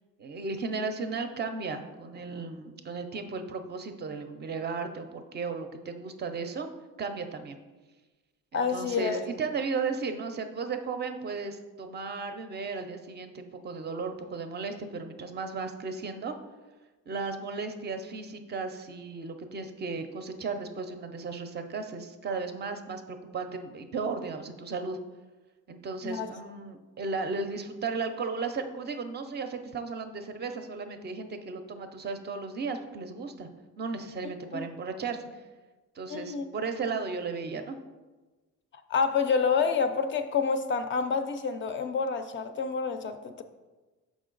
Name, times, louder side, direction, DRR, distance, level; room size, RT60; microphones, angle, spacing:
voice 1, 0.2-6.7 7.0-7.6 8.5-16.4 17.1-25.0 25.7-33.5 33.8-35.3 36.0-37.8, right 4 dB, 35° right, 7 dB, 0.4 m, -35 dB
voice 2, 8.5-9.2 26.0-26.3 34.5-34.6 36.1-36.4 38.9-43.4, left 5 dB, 40° left, 9 dB, 0.4 m, -28 dB
6.2 x 5.0 x 3.8 m, 1.2 s
cardioid pair, 155°, 31 cm